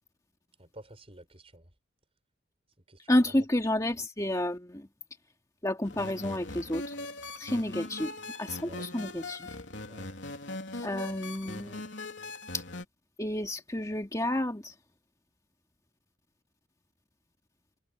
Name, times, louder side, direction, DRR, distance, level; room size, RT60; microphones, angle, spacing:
voice 1, 0.6-1.7 2.9-3.5 8.7-8.9 9.9-10.1, right 1 dB, 30° right, 5.5 m, -50 dB
voice 2, 3.1-4.9 5.6-7.0 7.4-8.1 8.4-9.5 10.8-11.8 12.5-12.6 13.2-14.7, left 1 dB, 20° left, 2.1 m, -30 dB
sound 1, 5.8-12.9, left 2 dB, 65° left, 3.6 m, -40 dB
head